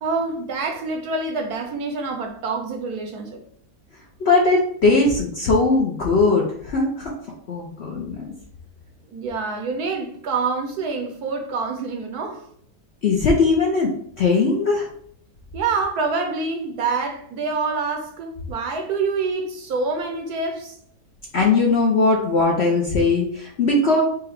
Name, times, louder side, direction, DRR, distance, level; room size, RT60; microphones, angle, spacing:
voice 1, 0.0-3.4 9.1-12.4 15.5-20.8, right 4 dB, 70° right, 1.1 m, -26 dB
voice 2, 4.2-7.1 7.5-8.3 13.0-13.9 14.2-14.9 21.3-24.0, left 3 dB, 55° left, 0.7 m, -19 dB
4.9 x 2.2 x 4.7 m
omnidirectional pair, 1.9 m